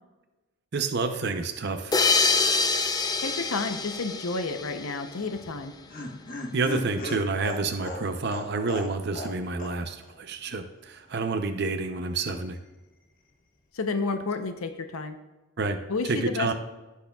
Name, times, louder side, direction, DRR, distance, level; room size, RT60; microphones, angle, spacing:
voice 1, 0.7-2.0 6.5-12.6 15.6-15.8 16.1-16.5, right 3 dB, 50° right, 7 dB, 0.6 m, -29 dB
sound 1, 1.9-5.2, left 4 dB, 15° left, 0.4 m, -25 dB
voice 2, 3.2-5.7 13.7-15.2 15.9-16.5, left 3 dB, 75° left, 7 dB, 0.7 m, -30 dB
Laughter, 5.3-9.3 9.6-9.7 10.0-10.1, left 1 dB, 40° left, 1.2 m, -36 dB
16.0 x 6.4 x 2.3 m, 1.1 s
head